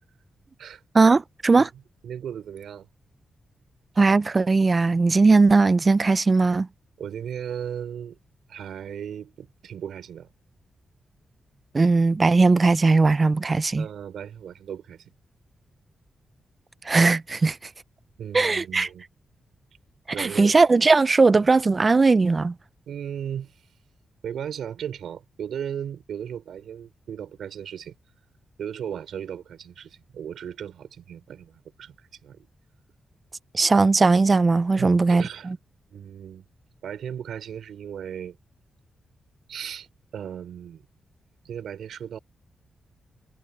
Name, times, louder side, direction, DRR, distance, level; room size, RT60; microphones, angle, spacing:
voice 1, 0.9-1.7 4.0-6.7 11.7-13.9 16.9-17.6 18.3-18.9 20.2-22.5 33.5-35.6, right 3 dB, 25° right, 0.3 m, -19 dB
voice 2, 2.0-2.9 7.0-8.2 8.5-10.3 13.8-15.1 18.2-19.0 20.1-20.6 22.9-23.5 24.2-28.0 28.6-32.5 34.8-35.5 35.9-36.4 36.8-38.4 39.5-39.9 40.1-40.8 41.4-42.2, right 9 dB, 90° right, 4.5 m, -36 dB
wide cardioid pair, 175°, 0 cm